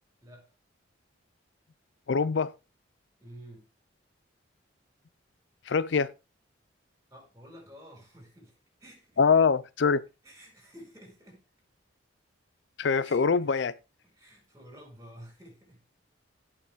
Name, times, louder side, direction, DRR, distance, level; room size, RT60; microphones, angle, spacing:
voice 1, 2.1-2.5 5.7-6.1 9.2-10.0 12.8-13.7, left 5 dB, 60° left, 0.4 m, -24 dB
voice 2, 3.2-3.6 7.1-9.2 10.2-11.4 13.0-13.5 14.0-15.8, equal, 15° right, 5.2 m, -51 dB
17.0 x 5.9 x 3.6 m
head